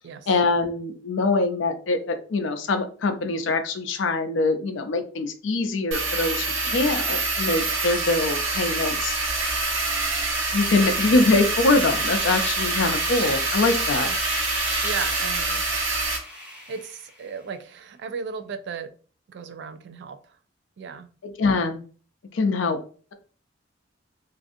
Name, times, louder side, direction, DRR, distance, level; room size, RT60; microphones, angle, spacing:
voice 1, 0.3-9.5 10.5-14.1 21.4-21.8 22.3-22.8, left 3 dB, 70° left, 0.4 m, -23 dB
sound 1, 5.9-16.2, right 3 dB, 85° right, 0.9 m, -26 dB
sound 2, 11.7-17.3, equal, 5° right, 0.9 m, -36 dB
voice 2, 14.8-15.9 16.7-18.9 19.3-20.4 20.8-21.1, right 6 dB, 60° right, 0.3 m, -36 dB
2.5 x 2.5 x 2.5 m
head